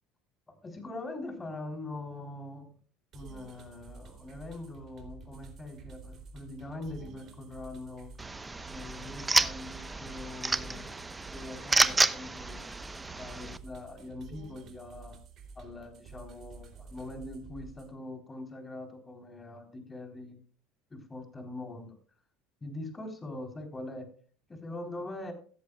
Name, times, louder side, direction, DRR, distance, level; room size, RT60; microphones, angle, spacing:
voice 1, 0.5-2.7 3.1-8.1 8.6-10.9 11.3-12.6 13.2-15.2 15.6-20.4 20.9-22.0 22.6-24.1 24.5-25.3, left 2 dB, 20° left, 6 dB, 4.0 m, -42 dB
sound 1, 3.1-17.9, right 4 dB, 45° right, 3.3 m, -50 dB
sound 2, 8.2-13.6, right 3 dB, 15° right, 1.0 m, -30 dB
16.5 x 14.0 x 2.4 m, 0.43 s
figure-of-eight pair, 70°, 0 cm